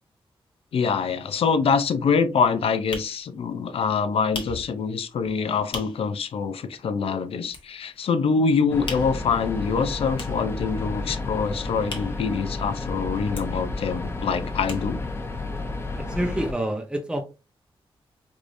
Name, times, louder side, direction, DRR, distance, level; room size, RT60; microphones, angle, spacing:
voice 1, 0.7-15.0, left 5 dB, 80° left, 0.5 m, -25 dB
sound 1, 2.0-6.2 6.5-6.6 6.9-8.1 8.4-12.9 13.2-15.2 15.5-15.6 15.8-15.9, left 3 dB, 60° left, 1.2 m, -40 dB
sound 2, 8.7-16.5, left 3 dB, 25° left, 0.7 m, -31 dB
voice 2, 16.0-17.2, right 1 dB, 10° right, 0.7 m, -27 dB
4.8 x 2.6 x 2.5 m
wide cardioid pair, 115°, 10 cm